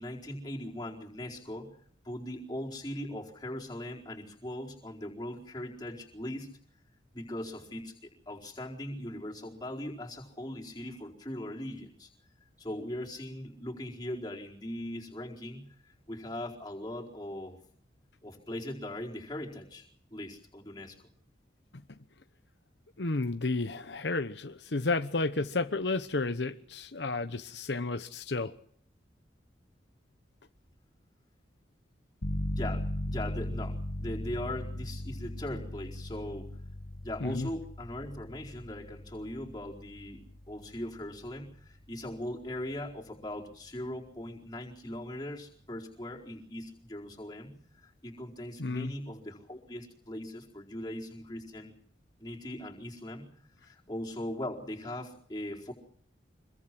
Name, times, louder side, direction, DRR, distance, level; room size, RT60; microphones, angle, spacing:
voice 1, 0.0-1.7 2.0-6.6 7.1-12.1 12.6-15.7 16.1-17.6 18.2-19.9 20.1-21.0 32.5-36.6 37.0-51.7 52.2-53.3 53.6-55.7, left 1 dB, 20° left, 4.5 m, -40 dB
voice 2, 23.0-28.5 37.2-37.5 48.6-48.9, left 3 dB, 75° left, 1.0 m, -32 dB
sound 1, 32.2-42.7, left 1 dB, 55° left, 1.6 m, -38 dB
25.5 x 22.5 x 6.1 m
head